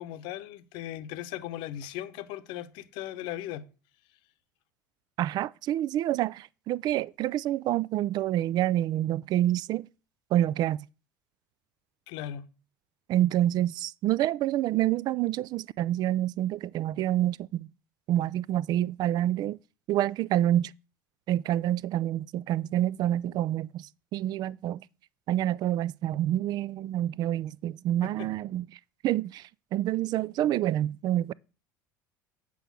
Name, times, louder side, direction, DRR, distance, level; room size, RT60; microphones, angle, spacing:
voice 1, 0.0-3.7 12.1-12.5 28.0-28.3, left 12 dB, 60° left, 0.9 m, -38 dB
voice 2, 5.2-9.9 10.3-10.8 13.1-17.7 18.1-19.6 19.9-20.7 21.3-24.8 25.3-28.7 29.0-31.3, right 13 dB, 45° right, 0.4 m, -27 dB
8.4 x 5.5 x 6.1 m
figure-of-eight pair, 65°, 10 cm